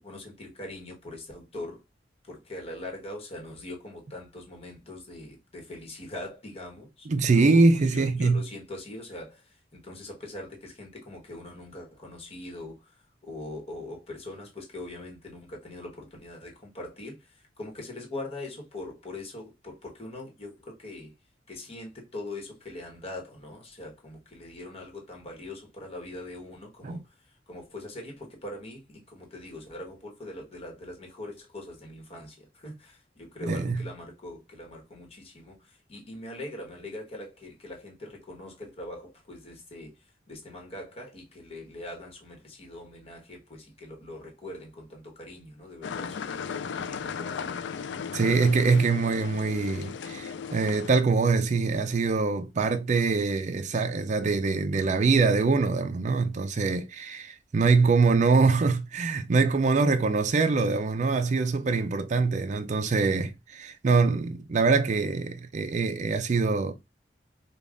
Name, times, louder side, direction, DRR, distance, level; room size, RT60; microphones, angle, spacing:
voice 1, 0.0-1.8 2.2-21.1 21.5-46.4 46.7-47.6, left 1 dB, 35° left, 1.3 m, -42 dB
voice 2, 7.1-8.4 26.8-27.0 33.4-33.8 48.1-66.7, right 4 dB, 45° right, 0.4 m, -24 dB
sound 1, 45.8-51.0, left 6 dB, 85° left, 0.4 m, -36 dB
5.2 x 2.3 x 2.5 m
head